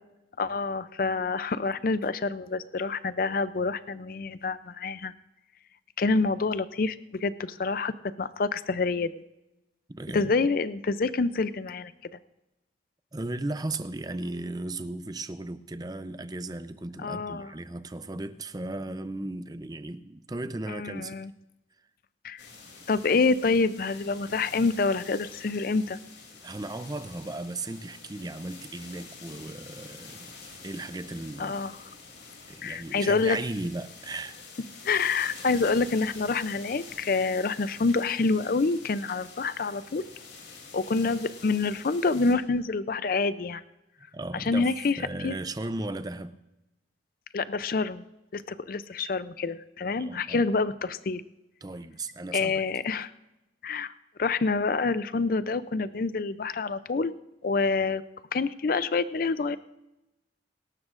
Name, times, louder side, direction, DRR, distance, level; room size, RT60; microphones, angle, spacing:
voice 1, 0.4-5.1 6.0-9.1 10.1-11.9 17.0-17.5 20.7-21.3 22.2-22.4 22.9-26.0 31.4-31.8 32.6-33.4 34.8-40.0 40.7-43.6 44.3-45.0 45.2-45.4 47.3-48.0 48.3-51.2 52.3-53.1 53.6-53.9 54.2-57.1 57.4-58.0 58.3-59.6, left 4 dB, 50° left, 15 dB, 0.4 m, -27 dB
voice 2, 9.9-10.3 13.1-21.2 26.4-30.3 30.6-31.6 32.5-34.4 44.1-46.4 50.0-50.4 51.6-52.6, right 2 dB, 20° right, 12 dB, 0.5 m, -36 dB
sound 1, 22.4-42.3, left 4 dB, 75° left, 2.9 m, -47 dB
24.5 x 12.5 x 2.5 m, 0.97 s
head